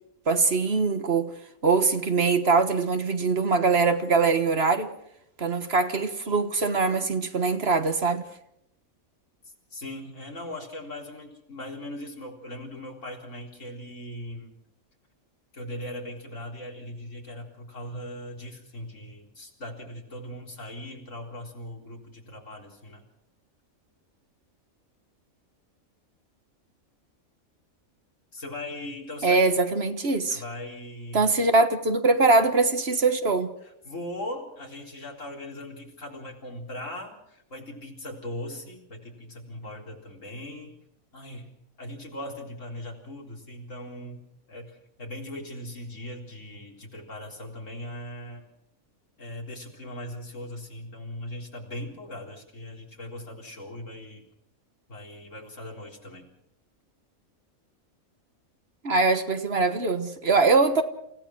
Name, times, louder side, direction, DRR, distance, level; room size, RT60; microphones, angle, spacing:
voice 1, 0.3-1.3 1.6-4.9 5.4-8.2 29.2-30.4 31.1-33.5 58.8-60.8, right 4 dB, 45° right, 1.6 m, -22 dB
voice 2, 9.4-14.5 15.5-23.0 28.3-29.4 30.3-31.3 33.6-40.7 41.1-41.5 41.8-44.2 44.5-48.4 49.2-54.2 54.9-56.2, left 1 dB, 60° left, 4.4 m, -39 dB
28.5 x 16.0 x 6.2 m
omnidirectional pair, 1.5 m